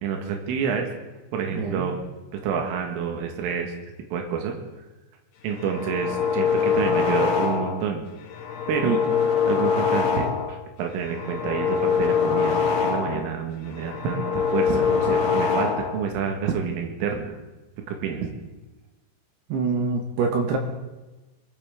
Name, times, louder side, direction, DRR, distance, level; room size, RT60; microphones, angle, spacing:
voice 1, 0.0-0.9 1.3-2.0 2.3-3.7 4.1-4.6 5.4-8.0 8.7-8.9 9.5-17.4 17.9-18.3, right 6 dB, 85° right, 2 dB, 4.2 m, -28 dB
voice 2, 1.5-1.9 8.8-9.0 19.5-20.6, right 5 dB, 70° right, 3 dB, 3.0 m, -25 dB
sound 1, 5.5-7.9 8.3-10.6 11.0-13.3 13.7-16.1, left 6 dB, 75° left, 3.8 m, -24 dB
24.5 x 14.0 x 3.7 m, 1.1 s
omnidirectional pair, 5.6 m